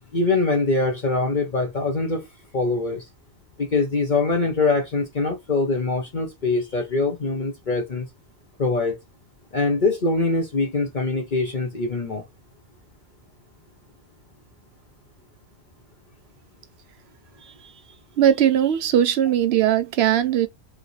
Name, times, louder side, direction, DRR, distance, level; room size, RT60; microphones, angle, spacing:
voice 1, 0.1-2.3 2.5-3.1 3.6-8.1 8.6-9.0 9.5-12.2, left 3 dB, 40° left, 1.0 m, -23 dB
voice 2, 18.2-20.5, right 10 dB, 65° right, 0.8 m, -19 dB
4.9 x 2.7 x 3.2 m
omnidirectional pair, 1.3 m